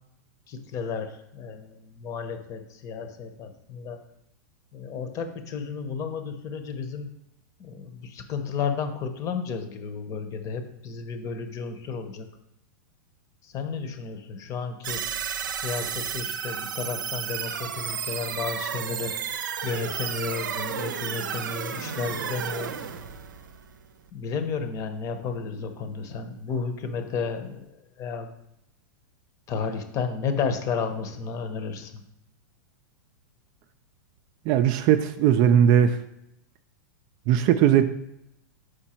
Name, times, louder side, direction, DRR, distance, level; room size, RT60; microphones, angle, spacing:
voice 1, 0.5-4.0 4.7-7.1 7.6-12.3 13.4-15.0 15.5-19.4 19.6-22.8 24.1-27.7 28.0-28.3 29.5-32.0, left 5 dB, 30° left, 8 dB, 0.9 m, -32 dB
sound 1, 14.8-24.1, right 8 dB, 80° right, 0.6 m, -32 dB
voice 2, 34.5-36.0 37.3-37.8, right 9 dB, 40° right, 10 dB, 0.4 m, -19 dB
5.1 x 4.5 x 4.3 m, 0.81 s
hypercardioid pair, 130°, 10 cm